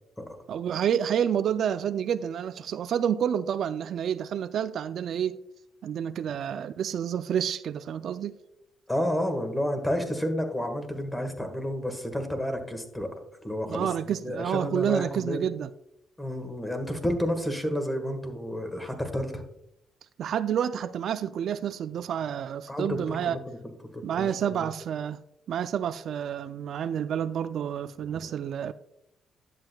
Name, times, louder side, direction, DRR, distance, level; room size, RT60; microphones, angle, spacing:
voice 1, 0.5-5.4 5.8-8.4 13.7-15.7 20.2-23.4 24.0-25.2 25.5-28.7, right 9 dB, 65° right, 0.3 m, -29 dB
voice 2, 8.9-13.1 13.4-15.4 16.2-19.4 22.7-23.4 23.9-24.7 28.0-28.3, equal, 10° left, 1.5 m, -31 dB
10.5 x 7.5 x 2.2 m
cardioid pair, 90°, 0 cm